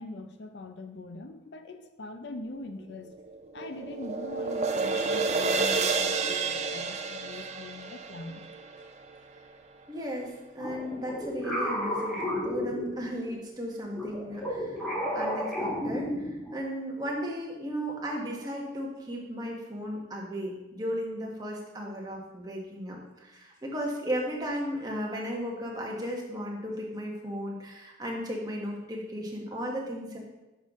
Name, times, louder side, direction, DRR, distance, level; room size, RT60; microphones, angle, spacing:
voice 1, 0.0-3.1 3.5-8.4, left 2 dB, 60° left, 7 dB, 0.5 m, -42 dB
sound 1, 3.0-9.4, right 4 dB, 35° right, 0.4 m, -30 dB
voice 2, 9.9-14.8 15.1-30.2, equal, 20° right, -2 dB, 1.1 m, -35 dB
sound 2, 10.6-13.3 13.9-16.6, equal, 5° left, 1.9 m, -32 dB
6.4 x 5.5 x 3.6 m, 1.0 s
head